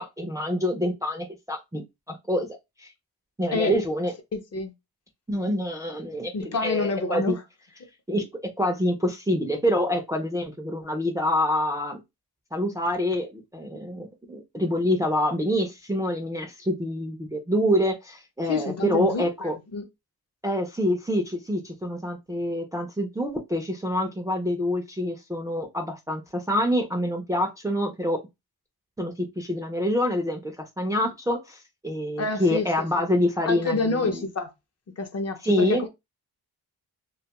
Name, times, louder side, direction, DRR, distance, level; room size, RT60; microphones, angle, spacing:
voice 1, 0.0-2.5 2.8-2.9 3.4-4.1 5.3-7.3 8.1-8.2 8.6-12.0 12.5-19.6 20.4-28.2 29.0-34.3 35.4-35.8, left 1 dB, 10° right, 0.3 m, -26 dB
voice 2, 4.3-4.7 6.3-7.4 18.5-19.3 19.7-19.8 32.2-32.7 33.5-34.5 35.0-35.9, left 3 dB, 40° left, 0.5 m, -27 dB
2.2 x 2.2 x 2.8 m
cardioid pair, 95°, 38 cm